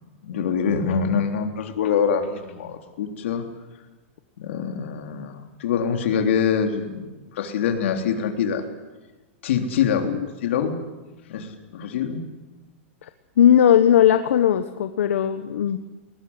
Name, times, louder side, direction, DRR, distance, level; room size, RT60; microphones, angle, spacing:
voice 1, 0.2-3.5 4.4-8.6 9.4-10.1 10.4-10.8 11.3-12.2, left 7 dB, 70° left, 4 dB, 3.6 m, -24 dB
voice 2, 13.4-15.8, left 10 dB, 85° left, 9 dB, 1.4 m, -18 dB
22.5 x 20.0 x 9.8 m, 1.2 s
supercardioid pair, 165°, 7 cm